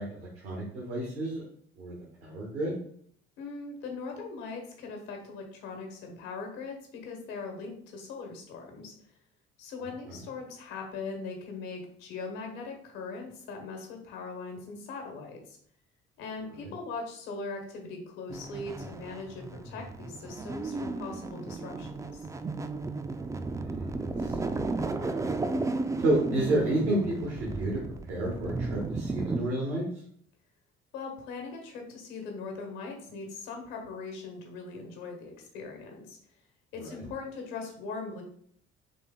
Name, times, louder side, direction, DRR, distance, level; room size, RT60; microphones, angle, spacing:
voice 1, 0.0-1.4 1.8-1.9 2.2-2.7 23.5-23.9 24.2-25.3 26.0-27.8 28.1-29.8 36.8-36.9, right 1 dB, 85° right, -3 dB, 1.1 m, -31 dB
voice 2, 3.4-8.9 9.6-15.6 16.2-22.3 30.9-36.2 36.7-38.2, left 4 dB, 65° left, 3 dB, 1.2 m, -40 dB
sound 1, 18.3-29.4, right 3 dB, 10° right, 0.3 m, -34 dB
4.1 x 3.3 x 3.6 m, 0.63 s
figure-of-eight pair, 50°, 34 cm